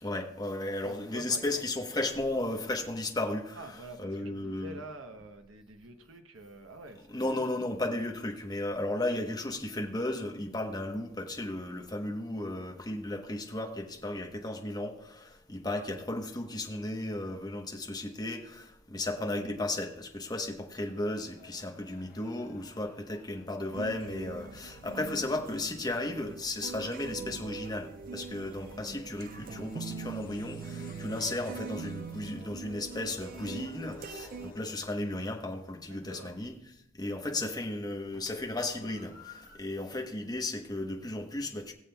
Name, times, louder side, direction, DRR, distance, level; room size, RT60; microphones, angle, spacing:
voice 1, 0.0-3.6 4.0-4.8 7.1-36.6 37.0-41.7, left 2 dB, 20° left, 3 dB, 1.0 m, -35 dB
voice 2, 0.8-1.6 3.5-7.6 35.9-36.4, right 1 dB, 70° right, 5 dB, 1.0 m, -47 dB
sound 1, 20.8-36.4 38.5-39.6, left 3 dB, 45° left, 1.2 m, -53 dB
sound 2, 23.7-34.5, right 5 dB, 40° right, 0.3 m, -43 dB
21.0 x 7.2 x 2.3 m, 0.81 s
head